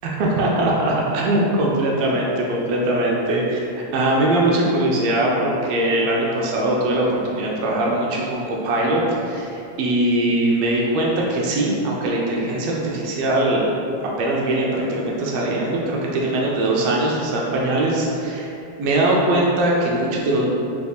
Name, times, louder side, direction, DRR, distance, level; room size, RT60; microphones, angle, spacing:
voice 1, 0.0-3.6 3.9-9.5 9.8-13.7 14.2-18.5 18.8-20.5, right 1 dB, 80° right, -3 dB, 1.5 m, -21 dB
4.9 x 3.4 x 2.3 m, 2.7 s
omnidirectional pair, 3.3 m